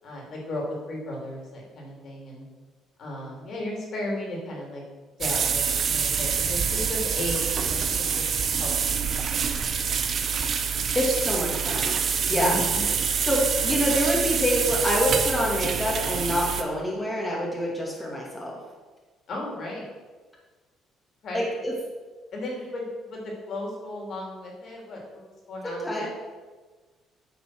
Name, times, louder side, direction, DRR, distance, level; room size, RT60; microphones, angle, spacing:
voice 1, 0.0-2.5 3.0-4.8 5.2-9.2 12.3-12.8 19.3-19.8 21.2-21.4 22.3-26.1, left 1 dB, 55° left, -1 dB, 3.2 m, -35 dB
sound 1, 5.2-16.6, right 6 dB, 45° right, 0.9 m, -26 dB
voice 2, 10.9-12.0 12.3-12.6 13.2-18.5 21.3-21.7 25.6-26.1, equal, 10° left, -4 dB, 2.3 m, -26 dB
9.3 x 6.0 x 6.2 m, 1.3 s
cardioid pair, 115°, 0 cm